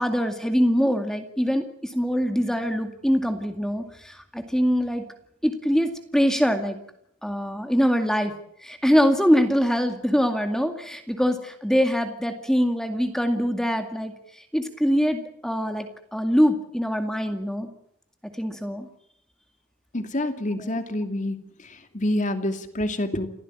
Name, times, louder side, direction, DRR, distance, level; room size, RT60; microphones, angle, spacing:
voice 1, 0.0-5.0 5.4-6.8 7.2-8.3 8.6-17.7 18.4-18.9 20.6-20.7, equal, ahead, 6 dB, 2.1 m, -23 dB
voice 2, 19.9-21.4 21.9-23.3, left 1 dB, 35° left, 8 dB, 2.5 m, -27 dB
29.0 x 15.5 x 8.7 m, 0.71 s
head